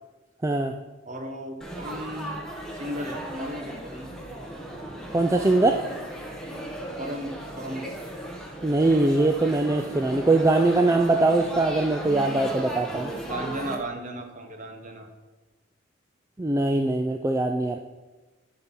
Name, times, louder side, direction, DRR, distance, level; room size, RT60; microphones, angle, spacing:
voice 1, 0.4-0.7 5.1-5.8 8.6-13.1 16.4-17.8, right 2 dB, 15° right, 4 dB, 0.3 m, -22 dB
voice 2, 1.0-2.4 2.7-4.1 7.0-7.9 13.2-15.1, right 1 dB, 40° right, 5 dB, 1.0 m, -35 dB
Laughter / Chatter / Crowd, 1.6-13.8, right 1 dB, 5° left, 1.1 m, -36 dB
11.0 x 4.1 x 6.0 m, 1.2 s
head